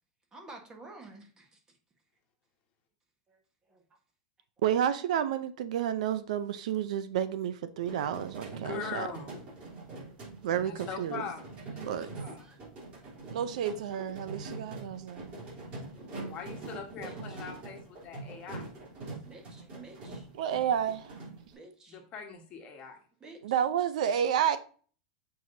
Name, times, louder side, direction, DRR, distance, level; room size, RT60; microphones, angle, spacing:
voice 1, 0.3-1.6 3.3-3.4 3.7-3.8 12.0-12.1 12.4-12.6 17.0-17.5 19.2-20.3 21.5-22.0 23.2-23.6, right 2 dB, 15° right, 1.4 m, -51 dB
voice 2, 4.6-9.1 10.4-11.2 11.8-12.1 13.3-15.3 20.4-21.2 23.4-24.6, right 9 dB, 75° right, 0.6 m, -30 dB
sound 1, 7.8-21.5, right 2 dB, 30° right, 3.3 m, -44 dB
voice 3, 8.5-9.4 10.5-12.6 16.2-18.7 21.9-23.0, left 6 dB, 35° left, 1.4 m, -42 dB
7.5 x 4.8 x 2.7 m
supercardioid pair, 150°, 4 cm